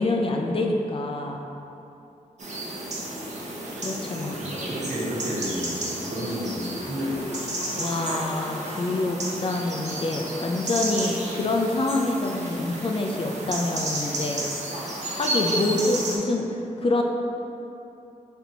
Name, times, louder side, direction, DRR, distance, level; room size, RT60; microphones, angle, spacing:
voice 1, 0.0-1.4 3.8-4.4 7.7-14.5 15.1-17.0, left 2 dB, 40° left, 1 dB, 0.4 m, -26 dB
sound 1, 2.4-16.2, right 1 dB, 55° right, 0.8 m, -32 dB
voice 2, 4.3-7.5, equal, 80° right, -8 dB, 1.2 m, -31 dB
4.3 x 4.2 x 2.7 m, 2.8 s
wide cardioid pair, 95°, 14 cm